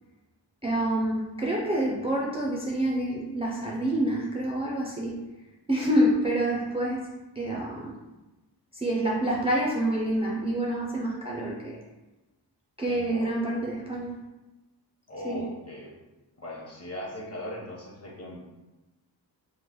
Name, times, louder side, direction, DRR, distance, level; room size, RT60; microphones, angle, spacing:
voice 1, 0.6-5.2 5.7-7.1 7.4-8.0 8.7-11.8 12.8-14.2 15.2-15.5, right 1 dB, 15° right, -4 dB, 0.4 m, -27 dB
voice 2, 12.9-13.3 15.1-15.9 16.4-18.4, left 1 dB, 35° left, -3 dB, 0.9 m, -39 dB
3.1 x 2.1 x 3.7 m, 1.1 s
wide cardioid pair, 100°, 41 cm